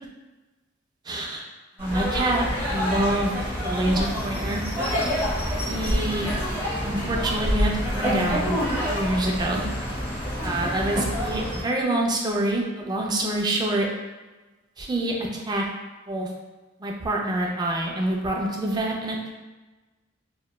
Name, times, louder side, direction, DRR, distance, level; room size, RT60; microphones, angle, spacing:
voice 1, 1.1-1.4 1.8-3.3 3.6-4.6 5.7-6.3 6.8-8.6 8.9-9.6 10.4-13.9 14.8-15.6 16.1-16.3 16.8-19.3, right 1 dB, 20° right, -1 dB, 0.3 m, -26 dB
sound 1, 1.8-11.6, equal, 15° left, 1.1 m, -27 dB
2.9 x 2.2 x 2.2 m, 1.2 s
head